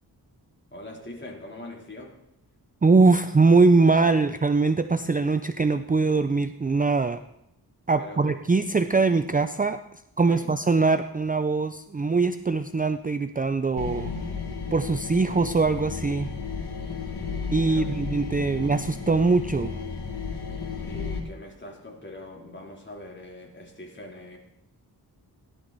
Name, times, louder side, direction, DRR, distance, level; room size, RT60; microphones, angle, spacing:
voice 1, 0.7-2.1 8.0-8.6 10.3-10.6 17.7-17.9 20.8-24.4, left 1 dB, 25° left, -1 dB, 3.5 m, -42 dB
voice 2, 2.8-7.2 7.9-9.8 10.2-14.1 14.7-16.3 17.5-19.7, right 3 dB, 20° right, 10 dB, 0.5 m, -22 dB
sound 1, 13.8-21.2, left 5 dB, 70° left, 2.6 m, -33 dB
17.0 x 11.5 x 4.1 m, 0.81 s
wide cardioid pair, 75°, 40 cm